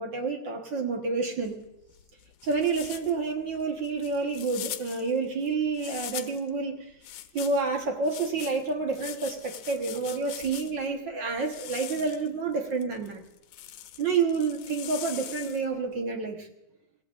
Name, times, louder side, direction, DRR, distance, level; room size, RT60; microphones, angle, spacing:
voice 1, 0.0-1.6 2.4-6.9 7.3-13.2 14.0-16.5, right 4 dB, 55° right, 3 dB, 1.4 m, -29 dB
sound 1, 1.4-6.5 7.0-10.9 11.4-15.8, left 12 dB, 80° left, 2.0 m, -42 dB
25.0 x 16.0 x 2.5 m, 0.89 s
omnidirectional pair, 3.5 m